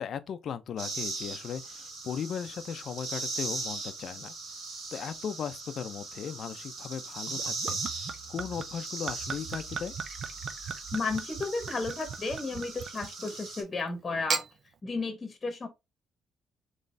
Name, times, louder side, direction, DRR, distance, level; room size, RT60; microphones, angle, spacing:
voice 1, 0.0-4.3 4.9-9.9, left 7 dB, 60° left, 0.5 m, -37 dB
sound 1, 0.8-13.6, right 3 dB, 75° right, 2.0 m, -39 dB
Gurgling / Chink clink / Liquid, 7.3-13.4 14.1-14.5, right 6 dB, 55° right, 0.6 m, -38 dB
voice 2, 10.9-14.4 14.8-15.7, left 3 dB, 30° left, 1.1 m, -33 dB
4.0 x 3.1 x 3.3 m
cardioid pair, 90°, 0 cm